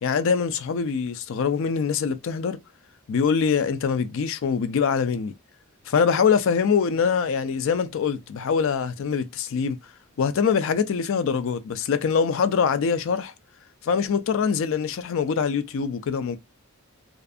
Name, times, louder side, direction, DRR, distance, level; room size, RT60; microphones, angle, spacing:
voice 1, 0.0-2.6 3.1-5.3 5.9-9.8 10.2-13.3 13.8-16.4, left 6 dB, 60° left, 0.4 m, -23 dB
2.5 x 2.4 x 2.4 m
head